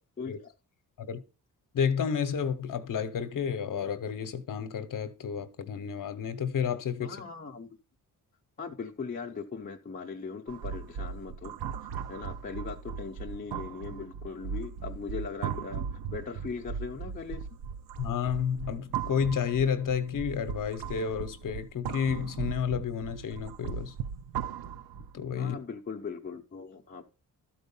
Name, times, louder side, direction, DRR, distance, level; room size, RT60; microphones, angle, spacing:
voice 1, 0.2-0.5 7.0-7.7 8.6-11.5 11.8-17.5 25.4-27.0, left 5 dB, 25° left, 0.6 m, -39 dB
voice 2, 1.7-7.2 18.0-23.9 25.1-25.6, left 7 dB, 60° left, 0.8 m, -31 dB
sound 1, 10.5-25.2, right 7 dB, 90° right, 0.6 m, -38 dB
12.5 x 4.5 x 5.4 m
wide cardioid pair, 175°, 37 cm